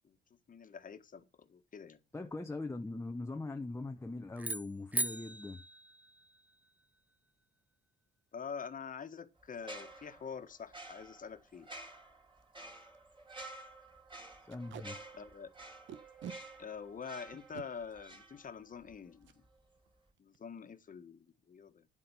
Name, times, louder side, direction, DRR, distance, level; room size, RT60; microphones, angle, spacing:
voice 1, 0.5-2.0 8.3-11.7 15.1-15.5 16.6-19.4 20.2-21.9, left 6 dB, 40° left, 1.6 m, -46 dB
voice 2, 2.1-5.6 14.5-15.0, left 2 dB, 15° left, 1.0 m, -41 dB
sound 1, 4.4-6.7, right 1 dB, 10° right, 0.6 m, -39 dB
sound 2, 9.6-18.9 19.2-19.5, right 2 dB, 25° right, 4.2 m, -51 dB
Packing tape duct tape, 11.0-11.1 11.5-11.6 11.8-12.0 12.4-12.5 12.8-13.0 13.3-13.5 14.5-14.9 15.9-16.4 17.3-17.7 19.2-19.4 19.8-19.9 20.2-20.6, right 9 dB, 75° right, 1.1 m, -48 dB
9.9 x 8.1 x 5.7 m
cardioid pair, 90°, 20 cm